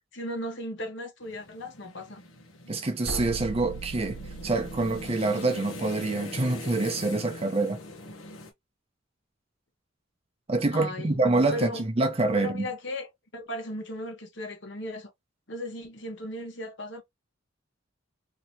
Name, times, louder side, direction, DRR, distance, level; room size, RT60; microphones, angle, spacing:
voice 1, 0.1-2.2 10.7-11.9 12.3-15.1 15.5-17.0, left 1 dB, 60° left, 1.1 m, -36 dB
sound 1, 1.2-8.5, left 2 dB, 90° left, 1.0 m, -42 dB
voice 2, 2.7-7.8 10.5-12.7, right 2 dB, 30° right, 0.6 m, -26 dB
sound 2, 3.0-5.1, right 3 dB, 65° right, 0.9 m, -38 dB
3.0 x 2.8 x 2.8 m
head